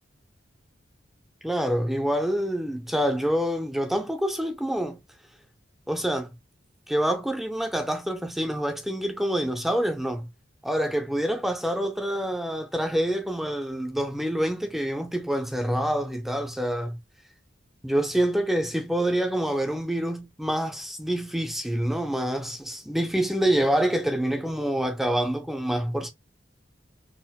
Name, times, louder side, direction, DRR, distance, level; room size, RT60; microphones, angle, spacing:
voice 1, 1.4-5.0 5.9-6.3 6.9-10.3 10.6-17.0 17.8-26.1, right 1 dB, ahead, 0.4 m, -26 dB
4.1 x 2.1 x 2.2 m
head